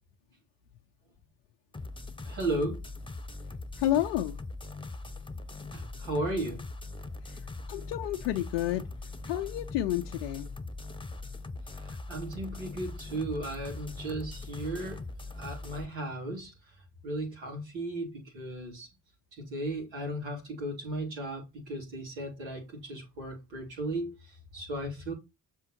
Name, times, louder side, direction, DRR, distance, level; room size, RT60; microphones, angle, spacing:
sound 1, 1.7-15.9, left 3 dB, 10° left, 1.1 m, -41 dB
voice 1, 2.2-2.8 5.7-6.6 11.8-15.0 15.3-16.5 17.0-18.9 19.4-25.1, right 1 dB, 80° right, 3.4 m, -35 dB
voice 2, 3.8-4.4 7.2-7.4 7.7-8.9 9.2-10.5, left 13 dB, 90° left, 0.6 m, -30 dB
7.1 x 4.1 x 4.4 m
hypercardioid pair, 40°, 44 cm